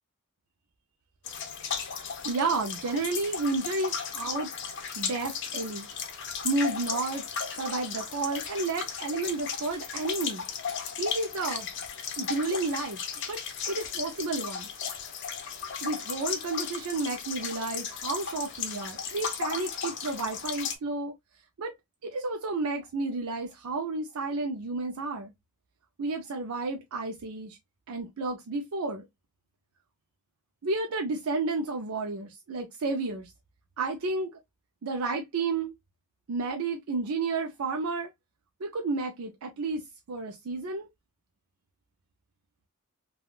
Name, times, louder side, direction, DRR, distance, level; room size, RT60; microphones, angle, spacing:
sound 1, 1.3-20.8, left 6 dB, 60° left, 0.6 m, -35 dB
voice 1, 2.2-4.5 5.0-5.9 6.4-7.2 7.5-10.4 11.0-11.7 12.2-13.0 13.3-14.7 15.8-21.1 21.6-21.7 22.0-25.3 26.0-27.6 27.9-29.0 30.6-33.3 33.8-34.3 34.8-35.7 36.3-38.1 38.6-39.8 40.1-40.9, right 3 dB, 85° right, 0.5 m, -31 dB
3.4 x 2.2 x 2.3 m
head